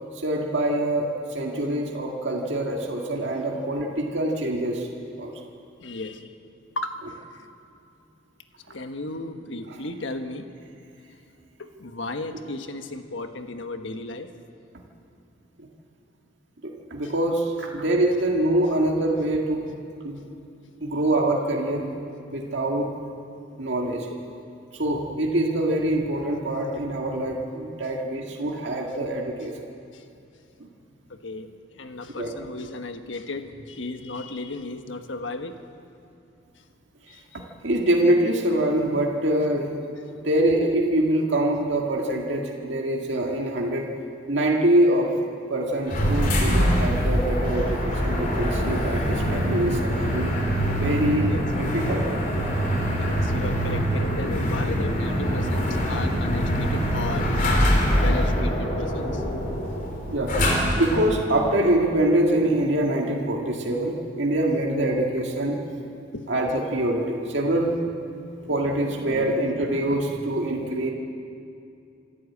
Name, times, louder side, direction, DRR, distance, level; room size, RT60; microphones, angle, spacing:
voice 1, 0.2-4.9 5.2-5.3 16.6-19.7 20.0-20.2 20.8-21.9 22.3-22.9 23.6-24.1 24.8-29.6 32.2-32.3 37.6-39.7 40.1-43.9 44.3-45.1 45.5-50.3 50.7-51.3 51.7-52.0 60.1-60.3 60.8-65.6 66.3-67.7 68.5-70.9, right 1 dB, 65° right, -1 dB, 1.9 m, -24 dB
voice 2, 5.8-6.3 6.7-7.5 8.7-10.5 11.6-14.3 17.0-17.1 24.1-24.6 29.9-30.0 31.1-35.6 36.6-36.7 37.1-37.4 49.0-49.2 51.2-51.5 53.0-59.2 65.8-65.9 66.1-66.3 68.4-68.5 69.0-69.3, left 2 dB, 75° left, 7 dB, 1.4 m, -35 dB
sound 1, 45.9-61.1, equal, 45° left, 3.8 m, -24 dB
26.5 x 12.5 x 8.5 m, 2.6 s
head